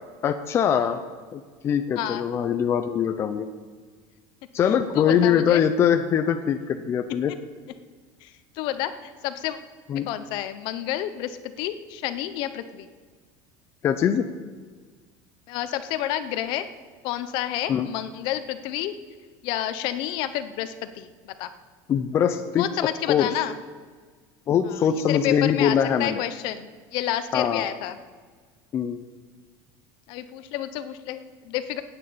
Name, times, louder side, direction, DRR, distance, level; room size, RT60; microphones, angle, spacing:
voice 1, 0.2-1.0 1.3-3.5 4.5-7.3 9.9-10.1 13.8-14.2 17.7-17.9 21.9-22.6 23.1-23.3 24.5-26.2 27.3-27.7 28.7-29.0, left 8 dB, 25° left, 7 dB, 0.6 m, -22 dB
voice 2, 2.0-2.3 4.9-5.6 8.2-9.6 10.1-12.9 15.5-16.7 17.0-18.9 19.4-21.1 21.4-21.5 22.6-23.6 24.7-28.0 30.1-31.8, left 12 dB, 55° left, 11 dB, 0.9 m, -30 dB
13.0 x 8.9 x 8.5 m, 1.5 s
cardioid pair, 165°, 10 cm